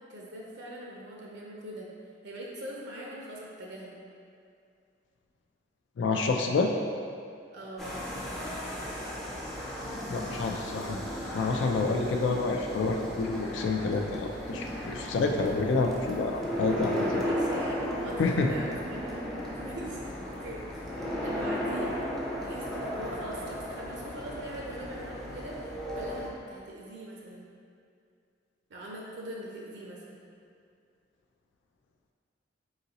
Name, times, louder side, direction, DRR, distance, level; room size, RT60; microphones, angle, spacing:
voice 1, 0.1-1.9 2.2-4.0 7.5-7.9 16.9-19.2 19.6-20.0 20.3-22.0 22.4-27.5 28.7-30.2, right 1 dB, 65° right, -3 dB, 0.5 m, -42 dB
voice 2, 6.0-6.7 10.1-11.0 11.3-17.2 18.2-18.5, left 3 dB, 75° left, 3 dB, 0.3 m, -28 dB
sound 1, 7.8-26.3, equal, ahead, 0.4 m, -35 dB
4.0 x 3.8 x 2.8 m, 2.4 s
head